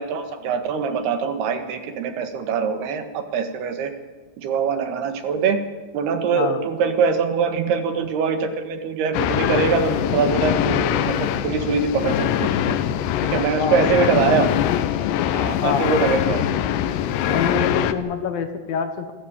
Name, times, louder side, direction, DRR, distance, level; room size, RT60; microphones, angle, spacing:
voice 1, 0.0-3.9 4.4-5.6 5.9-12.7 13.2-14.6 15.3-16.4 17.3-17.5, right 5 dB, 70° right, 7 dB, 3.5 m, -23 dB
sound 1, 9.1-17.9, left 11 dB, 90° left, 3.2 m, -23 dB
voice 2, 15.6-16.1 17.3-19.1, left 6 dB, 65° left, 8 dB, 2.7 m, -25 dB
27.5 x 13.0 x 8.7 m, 1.2 s
omnidirectional pair, 4.9 m